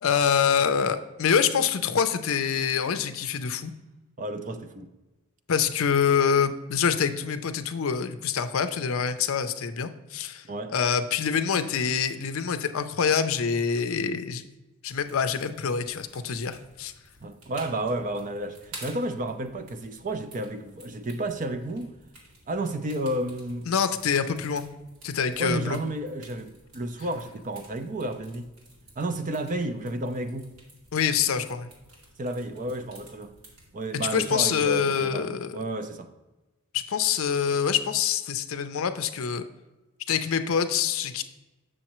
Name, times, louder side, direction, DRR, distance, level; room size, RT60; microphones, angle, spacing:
voice 1, 0.0-3.7 5.5-10.4 10.7-14.4 14.8-16.9 23.7-24.7 25.0-25.8 30.9-31.7 33.9-35.6 36.7-39.4 40.1-41.2, left 7 dB, 60° left, 10 dB, 0.5 m, -25 dB
voice 2, 4.2-4.9 10.4-10.7 17.2-21.9 22.5-23.7 25.4-28.5 29.0-30.6 32.2-33.3 33.7-36.1, right 1 dB, 35° right, 8 dB, 0.5 m, -31 dB
sound 1, 14.9-34.6, right 1 dB, 85° right, 2.3 m, -52 dB
7.5 x 6.3 x 3.0 m, 1.1 s
head